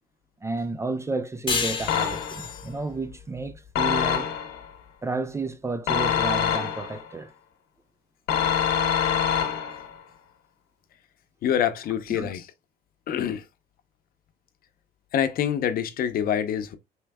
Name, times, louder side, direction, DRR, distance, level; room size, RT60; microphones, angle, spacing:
voice 1, 0.4-4.3 5.0-7.3 12.1-12.3, right 3 dB, 15° right, 0.3 m, -31 dB
sound 1, 1.5-4.6, left 5 dB, 30° left, 0.8 m, -32 dB
sound 2, 1.9-2.6 3.7-4.6 5.9-7.1 8.3-9.9, left 8 dB, 90° left, 0.9 m, -25 dB
voice 2, 11.4-12.5 13.1-13.4 15.1-16.8, left 9 dB, 60° left, 0.7 m, -26 dB
4.6 x 3.1 x 2.2 m
cardioid pair, 110°, 17 cm